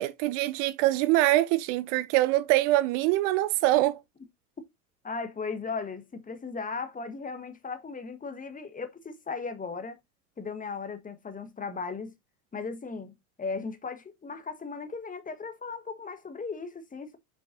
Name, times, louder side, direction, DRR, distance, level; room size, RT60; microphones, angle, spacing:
voice 1, 0.0-4.0, right 16 dB, 55° right, 0.7 m, -24 dB
voice 2, 5.0-10.0 10.4-12.1 12.5-13.1 13.4-17.2, left 4 dB, 20° left, 1.5 m, -37 dB
7.3 x 6.1 x 2.6 m
hypercardioid pair, 85°, 45 cm